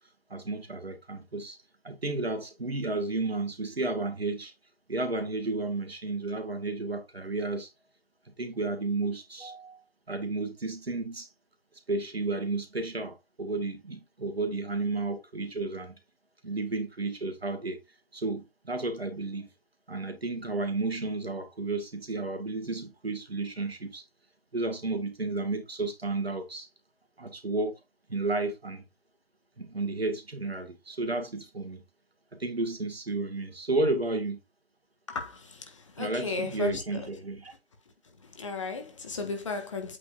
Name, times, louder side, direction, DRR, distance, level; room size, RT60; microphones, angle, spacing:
voice 1, 0.3-1.6 1.8-4.5 4.9-7.7 8.4-11.3 11.9-16.0 16.4-17.8 18.1-19.5 19.9-24.0 24.5-26.7 27.2-27.8 28.1-28.8 29.6-31.8 32.3-34.4 36.0-37.5, right 3 dB, 75° right, 2.0 m, -32 dB
voice 2, 35.1-37.1 38.2-40.0, left 3 dB, 30° left, 1.4 m, -35 dB
8.3 x 4.8 x 2.6 m
figure-of-eight pair, 160°, 31 cm